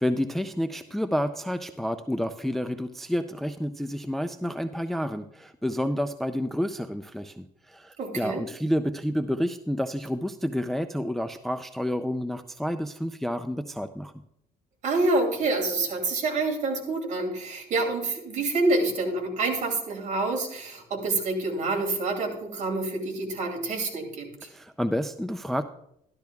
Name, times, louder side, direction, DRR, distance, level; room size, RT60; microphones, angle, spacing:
voice 1, 0.0-14.1 24.4-25.6, equal, ahead, 10 dB, 0.4 m, -29 dB
voice 2, 8.0-8.4 14.8-24.3, right 2 dB, 50° right, 3 dB, 2.7 m, -27 dB
13.5 x 12.0 x 2.3 m, 0.77 s
cardioid pair, 110°, 16 cm